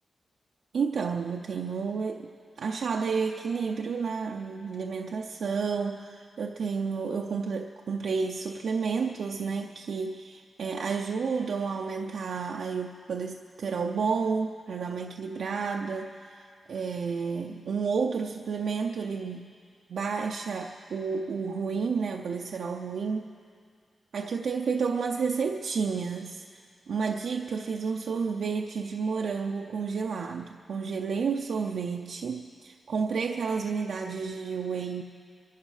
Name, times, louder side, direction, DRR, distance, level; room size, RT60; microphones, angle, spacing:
voice 1, 0.7-2.3 2.6-16.4 16.7-19.5 19.9-23.2 24.1-35.0, right 5 dB, 75° right, 2 dB, 0.6 m, -31 dB
24.5 x 11.5 x 5.0 m, 2.2 s
cardioid pair, 70°, 0 cm